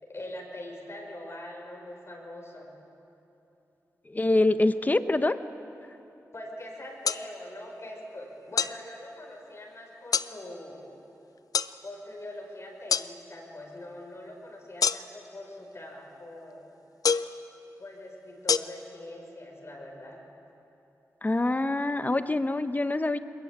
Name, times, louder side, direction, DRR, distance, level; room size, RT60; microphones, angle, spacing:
voice 1, 0.0-2.7 6.3-11.0 11.8-16.7 17.8-20.2, left 1 dB, 45° left, 0 dB, 5.8 m, -43 dB
voice 2, 4.1-5.4 21.2-23.2, left 2 dB, 25° left, 10 dB, 1.1 m, -25 dB
sound 1, 7.0-7.2 8.6-8.8 10.1-10.3 11.5-11.7 12.9-13.1 14.8-15.3 17.0-17.4 18.5-18.6, left 6 dB, 75° left, 0.6 m, -25 dB
22.0 x 22.0 x 8.8 m, 2.9 s
cardioid pair, 60°, 6 cm